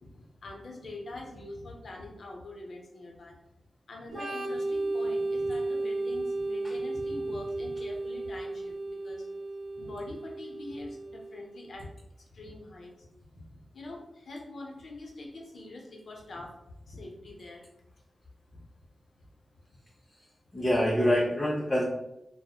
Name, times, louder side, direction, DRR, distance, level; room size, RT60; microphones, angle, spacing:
voice 1, 0.0-3.4 3.9-8.7 9.0-9.3 9.8-11.9 12.3-16.5 16.8-17.7 18.5-18.6, left 2 dB, 70° left, -1 dB, 0.6 m, -44 dB
Organ, 4.1-11.6, right 2 dB, 55° right, 0.6 m, -34 dB
voice 2, 20.5-21.8, equal, 30° left, -4 dB, 0.6 m, -25 dB
2.8 x 2.0 x 2.3 m, 0.86 s
cardioid pair, 50°, 0 cm